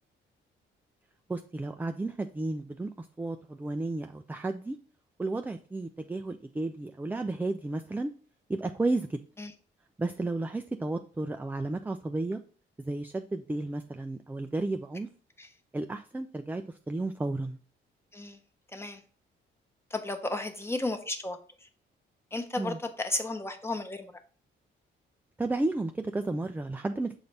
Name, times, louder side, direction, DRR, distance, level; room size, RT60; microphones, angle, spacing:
voice 1, 1.3-4.8 5.2-8.1 8.5-9.2 10.0-12.4 12.9-15.1 15.7-17.6 22.6-22.8 25.4-27.1, right 2 dB, 10° right, 6 dB, 0.4 m, -32 dB
voice 2, 18.7-19.0 19.9-21.4 22.3-24.1, left 2 dB, 10° left, 5 dB, 0.9 m, -33 dB
7.0 x 4.0 x 3.3 m, 0.40 s
cardioid pair, 90°, 20 cm